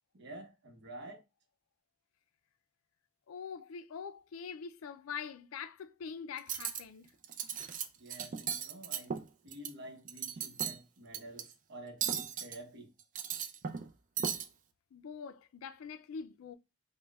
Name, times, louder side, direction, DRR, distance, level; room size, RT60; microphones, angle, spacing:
voice 1, 0.1-1.2 8.0-9.2 9.4-12.9, right 1 dB, 60° right, 0.8 m, -49 dB
voice 2, 3.3-7.1 14.9-16.6, left 6 dB, 85° left, 0.4 m, -44 dB
Cutlery silverware, 6.4-6.8 7.2-7.8 8.1-9.7 10.0-10.8 11.1-11.4 12.0-12.6 13.0-13.9 14.2-14.4, right 8 dB, 40° right, 0.4 m, -36 dB
5.2 x 2.1 x 2.3 m
head